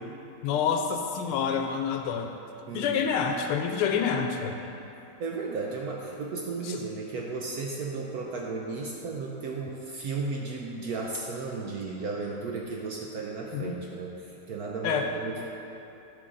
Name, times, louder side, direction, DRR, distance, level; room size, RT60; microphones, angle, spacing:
voice 1, 0.4-2.3 2.7-4.6 6.6-6.8 13.5-13.7 14.8-15.1, left 6 dB, 85° left, 5 dB, 1.5 m, -27 dB
voice 2, 2.7-3.0 5.2-15.4, right 4 dB, 75° right, -1 dB, 0.8 m, -34 dB
12.0 x 6.1 x 3.8 m, 2.9 s
omnidirectional pair, 2.4 m